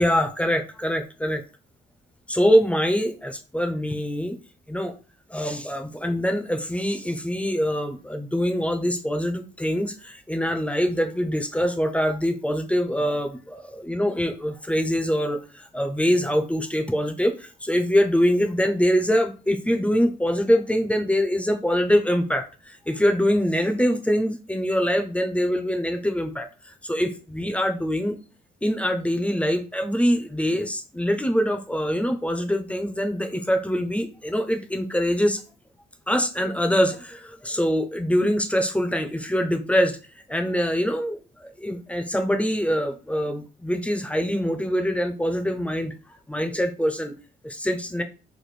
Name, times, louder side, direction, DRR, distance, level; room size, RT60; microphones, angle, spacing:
voice 1, 0.0-1.4 2.3-4.4 4.7-4.9 5.3-28.2 28.6-35.4 36.1-40.0 40.3-45.9 46.3-47.1 47.4-48.0, equal, 5° left, 6 dB, 0.6 m, -24 dB
3.3 x 2.5 x 4.1 m, 0.34 s
cardioid pair, 90°, 20 cm